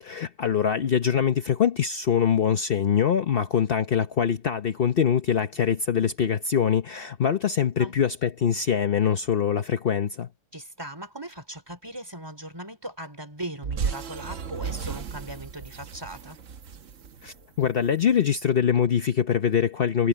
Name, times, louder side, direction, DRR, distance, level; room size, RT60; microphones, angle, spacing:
voice 1, 0.0-10.3 17.2-20.1, left 8 dB, 65° left, 0.5 m, -23 dB
voice 2, 10.5-16.4, right 1 dB, 10° right, 4.4 m, -39 dB
sound 1, 13.6-18.0, right 6 dB, 50° right, 1.1 m, -34 dB
omnidirectional pair, 2.1 m